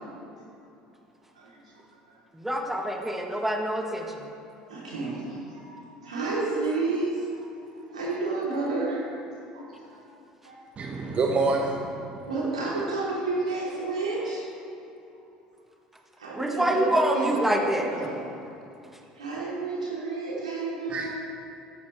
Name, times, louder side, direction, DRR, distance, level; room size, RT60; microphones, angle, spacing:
voice 1, 1.3-1.8 4.7-7.4 7.9-9.0 9.5-9.6 9.9-10.0 10.4-10.6 12.2-14.4 16.2-16.8 17.1-18.2 19.1-21.1, right 3 dB, 85° right, -6 dB, 3.5 m, -31 dB
voice 2, 2.3-4.2 6.5-6.6 16.3-17.9, right 1 dB, 5° right, 1 dB, 1.7 m, -26 dB
voice 3, 10.8-12.3 20.9-21.1, right 3 dB, 35° right, 1 dB, 1.2 m, -27 dB
16.5 x 13.0 x 3.4 m, 2.7 s
figure-of-eight pair, 65°, 4 cm